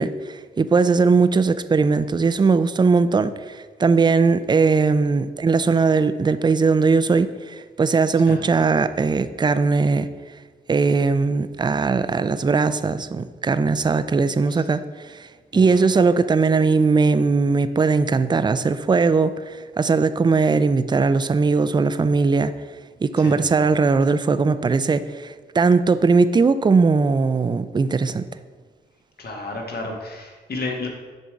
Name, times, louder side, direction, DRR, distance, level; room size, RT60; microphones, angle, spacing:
voice 1, 0.0-10.1 10.7-14.8 15.1-15.3 15.5-22.5 23.0-28.2, right 4 dB, 25° right, 13 dB, 0.4 m, -19 dB
voice 2, 29.2-30.9, left 2 dB, 55° left, 1 dB, 1.3 m, -32 dB
6.5 x 3.7 x 4.7 m, 1.5 s
supercardioid pair, 45°, 19 cm